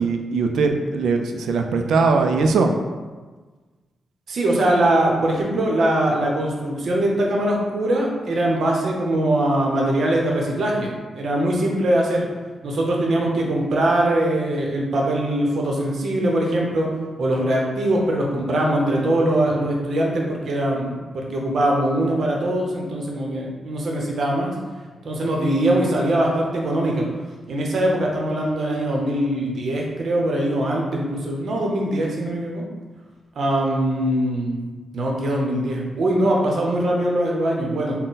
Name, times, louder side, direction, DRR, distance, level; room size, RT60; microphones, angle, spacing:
voice 1, 0.0-2.7, right 4 dB, 85° right, 4 dB, 0.3 m, -20 dB
voice 2, 4.3-12.2 12.6-16.9 17.2-24.5 25.0-27.0 27.5-32.6 33.4-34.6 34.9-37.9, right 1 dB, 60° right, -1 dB, 0.7 m, -22 dB
3.8 x 2.1 x 4.0 m, 1.3 s
cardioid pair, 105°, 0 cm